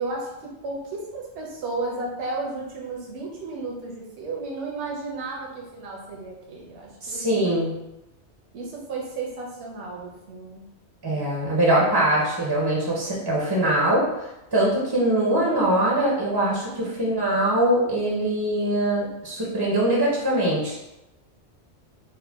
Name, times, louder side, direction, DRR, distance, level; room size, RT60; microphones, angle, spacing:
voice 1, 0.0-7.6 8.5-10.6, right 3 dB, 70° right, -2 dB, 0.9 m, -33 dB
voice 2, 7.0-7.7 11.0-14.0 14.5-20.7, right 1 dB, 30° right, -4 dB, 0.5 m, -22 dB
3.9 x 2.1 x 3.4 m, 0.93 s
omnidirectional pair, 1.2 m